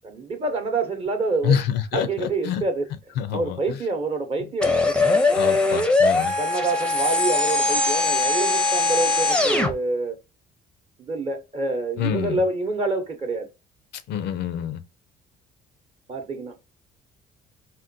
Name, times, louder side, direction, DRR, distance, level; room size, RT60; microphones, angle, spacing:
voice 1, 0.0-1.6 1.9-2.9 3.3-5.4 6.4-10.2 11.0-13.5 16.1-16.5, right 3 dB, 35° right, 0.7 m, -27 dB
voice 2, 1.4-2.6 3.2-3.8 5.3-6.3 12.0-12.4 14.1-14.8, left 9 dB, 75° left, 0.5 m, -26 dB
sound 1, 4.6-9.7, left 3 dB, 5° left, 0.5 m, -21 dB
3.7 x 2.2 x 2.5 m
cardioid pair, 110°, 17 cm